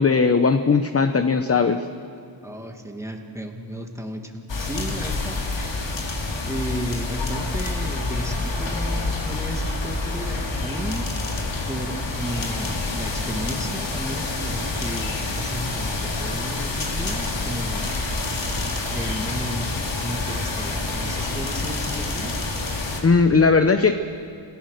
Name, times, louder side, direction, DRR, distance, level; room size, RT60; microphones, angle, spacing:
voice 1, 0.0-1.9 23.0-23.9, left 4 dB, 30° left, 8 dB, 0.8 m, -18 dB
voice 2, 2.4-5.8 6.4-11.4 11.7-18.5 18.9-19.7 19.9-22.4, equal, 5° right, 3 dB, 2.2 m, -34 dB
sound 1, 4.5-23.0, left 2 dB, 70° left, 3.5 m, -27 dB
29.5 x 16.0 x 6.6 m, 2.6 s
wide cardioid pair, 95°, 46 cm